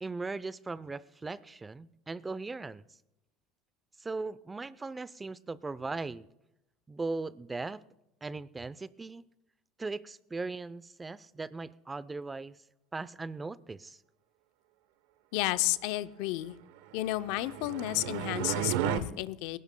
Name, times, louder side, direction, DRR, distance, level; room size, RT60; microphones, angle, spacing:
voice 1, 0.0-2.8 4.0-6.3 6.9-7.8 8.2-9.2 9.8-12.6 12.9-14.0, right 3 dB, 15° right, 17 dB, 0.6 m, -38 dB
voice 2, 15.3-16.6 16.9-19.6, left 17 dB, 70° left, 13 dB, 0.6 m, -32 dB
sound 1, 17.1-19.0, right 11 dB, 80° right, 0.9 m, -33 dB
21.0 x 17.5 x 2.3 m, 0.88 s
supercardioid pair, 100°, 0 cm